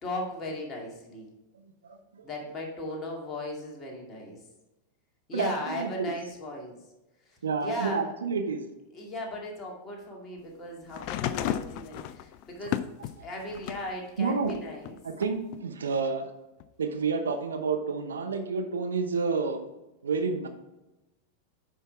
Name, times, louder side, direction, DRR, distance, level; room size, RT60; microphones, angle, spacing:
voice 1, 0.0-1.3 2.2-4.4 5.3-6.8 7.3-8.1 8.9-12.9 13.2-15.0, left 1 dB, 25° left, -1 dB, 2.3 m, -37 dB
voice 2, 1.8-2.2 5.3-6.1 7.4-8.7 12.6-12.7 13.2-13.3 14.2-14.5 15.0-16.3 16.8-19.6 20.0-20.5, right 4 dB, 70° right, 6 dB, 0.8 m, -29 dB
sound 1, 10.9-13.9 14.4-15.6 16.6-16.7, left 12 dB, 45° left, 0.4 m, -34 dB
9.6 x 5.6 x 3.4 m, 0.99 s
figure-of-eight pair, 90°, 0 cm